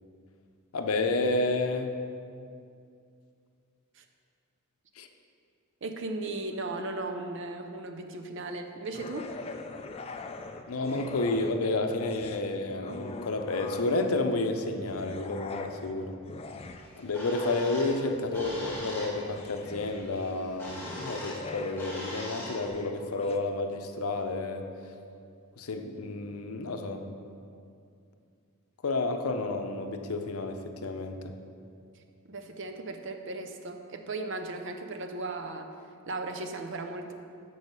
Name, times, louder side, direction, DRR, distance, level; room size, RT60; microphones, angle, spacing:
voice 1, 0.7-1.9 5.0-5.1 10.7-16.2 17.0-24.7 25.6-27.0 28.8-31.3, left 2 dB, 80° left, 6 dB, 0.6 m, -30 dB
voice 2, 5.8-9.3 32.3-35.7 36.1-37.1, right 2 dB, 55° right, 5 dB, 0.7 m, -36 dB
sound 1, 8.9-11.6 11.9-14.3 14.8-23.4, left 3 dB, 25° left, 0.3 m, -43 dB
Bird, 16.8-22.7, equal, 10° left, 1.5 m, -42 dB
6.9 x 6.3 x 5.3 m, 2.4 s
head